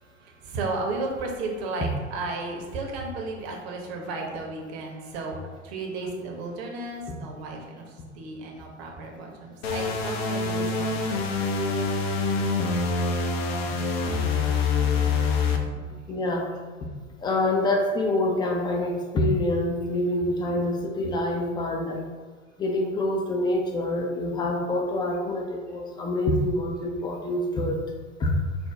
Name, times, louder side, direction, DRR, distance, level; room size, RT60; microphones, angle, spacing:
voice 1, 0.0-11.5 14.3-14.4 15.4-15.5 28.2-28.3, right 2 dB, 55° right, 1 dB, 0.9 m, -34 dB
sound 1, 9.6-15.6, left 4 dB, 55° left, 0.7 m, -25 dB
voice 2, 16.1-16.5 16.8-16.9 17.2-22.0 22.6-27.8 28.2-28.3, left 1 dB, 10° left, 2 dB, 0.4 m, -26 dB
5.0 x 2.1 x 3.5 m, 1.4 s
figure-of-eight pair, 90°, 38 cm